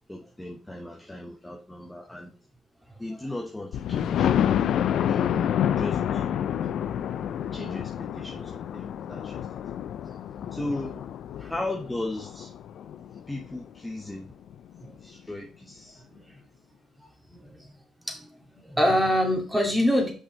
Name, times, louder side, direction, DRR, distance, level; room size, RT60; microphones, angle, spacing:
voice 1, 0.1-2.3 3.0-4.3 5.1-5.5 5.8-6.3 7.5-9.5 10.5-11.0 11.5-12.5 13.3-14.3 15.0-16.0, left 2 dB, 10° left, 1.0 m, -36 dB
Thunder, 3.7-13.5 14.0-14.1 14.5-14.6 14.9-15.0, left 9 dB, 75° left, 0.4 m, -28 dB
voice 2, 17.3-17.7 18.1-18.3 18.6-20.1, equal, 5° right, 2.4 m, -25 dB
6.2 x 5.5 x 4.0 m
cardioid pair, 90°, 0 cm